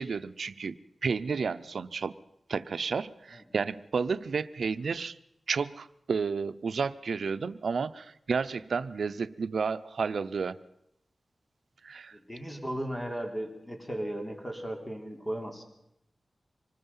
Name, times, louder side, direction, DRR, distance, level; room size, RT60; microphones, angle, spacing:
voice 1, 0.0-2.1 2.5-5.2 5.5-10.6 11.8-12.2, right 5 dB, 85° right, 14 dB, 0.7 m, -31 dB
voice 2, 12.1-15.6, right 1 dB, 10° left, 3 dB, 3.4 m, -36 dB
25.0 x 20.5 x 5.6 m, 0.81 s
wide cardioid pair, 125°, 0 cm